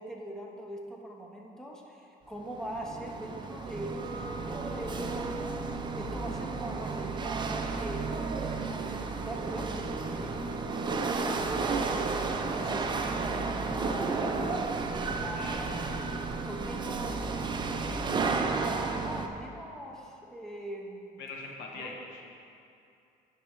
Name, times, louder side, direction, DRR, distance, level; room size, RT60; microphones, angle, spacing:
voice 1, 0.0-8.1 8.6-12.0 12.5-14.6 15.1-17.2 18.1-21.2 21.7-22.1, right 1 dB, 5° left, -1 dB, 0.9 m, -42 dB
Chatter / Hiss / Rattle, 2.4-19.3, right 4 dB, 25° right, 0.5 m, -32 dB
Keyboard (musical), 4.0-5.8, right 2 dB, 50° right, 1.2 m, -50 dB
voice 2, 21.2-22.3, left 3 dB, 90° left, 0 dB, 1.0 m, -42 dB
9.8 x 5.4 x 3.1 m, 2.6 s
cardioid pair, 110°, 17 cm